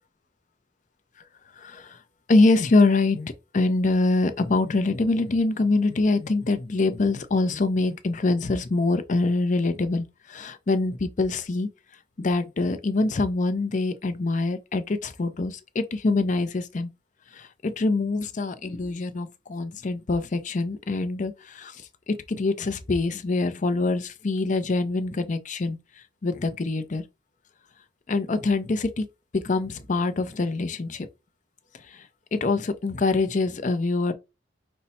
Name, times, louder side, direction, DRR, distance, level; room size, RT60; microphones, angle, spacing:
voice 1, 1.6-2.0 2.3-11.7 12.2-16.9 17.3-25.8 26.2-27.0 28.1-29.1 29.3-31.1 31.9-34.1, left 3 dB, 40° left, 0.5 m, -24 dB
5.3 x 2.1 x 4.1 m
head